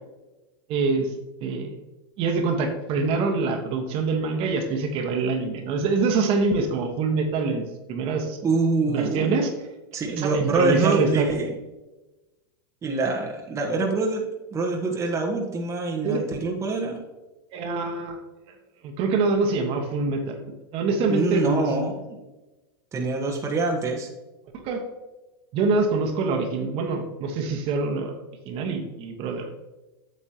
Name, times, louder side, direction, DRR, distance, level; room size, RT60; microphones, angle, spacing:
voice 1, 0.7-1.1 1.4-1.8 2.2-7.6 7.9-8.4 8.9-9.5 10.1-11.4 16.0-16.3 17.5-18.2 18.5-18.6 18.8-21.7 24.6-24.8 25.5-28.2 28.4-29.5, right 4 dB, 45° right, 4 dB, 1.4 m, -25 dB
voice 2, 8.4-9.3 9.9-11.5 12.8-17.0 21.1-21.9 22.9-24.1, right 3 dB, 20° right, 1 dB, 1.3 m, -25 dB
8.4 x 7.2 x 2.9 m, 1.1 s
hypercardioid pair, 110°, 13 cm